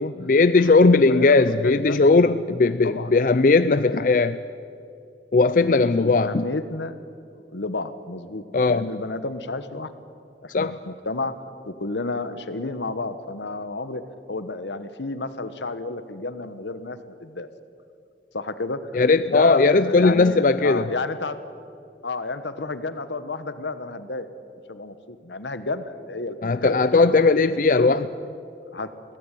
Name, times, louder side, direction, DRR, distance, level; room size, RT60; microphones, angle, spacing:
voice 1, 0.0-4.4 5.3-6.5 8.5-8.9 10.5-10.8 18.9-20.9 26.4-28.1, left 3 dB, 45° left, 12 dB, 0.5 m, -18 dB
voice 2, 0.9-2.0 2.8-3.1 3.8-4.0 5.7-7.0 7.3-9.9 10.4-11.4 11.7-14.0 14.3-17.5 18.3-19.0 19.3-21.4 22.0-24.3 24.7-26.9 27.8-27.9 28.7-28.9, left 3 dB, 80° left, 12 dB, 1.2 m, -31 dB
22.0 x 16.5 x 10.0 m, 2.5 s
head